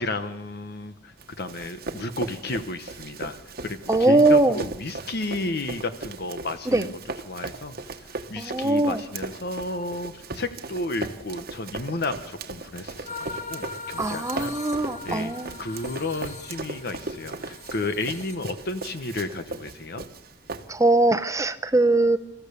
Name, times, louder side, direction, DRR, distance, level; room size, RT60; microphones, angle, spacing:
voice 1, 0.0-6.9 7.2-20.0, left 2 dB, 55° left, 9 dB, 1.1 m, -32 dB
Run, 1.2-21.0, right 3 dB, 55° right, 1.3 m, -38 dB
voice 2, 3.9-4.6 6.7-6.9 8.4-9.0 14.0-15.5 20.7-22.2, right 2 dB, 15° right, 11 dB, 0.8 m, -21 dB
sound 1, 13.0-18.8, left 4 dB, 40° left, 1.8 m, -40 dB
27.0 x 14.5 x 6.9 m, 0.84 s
head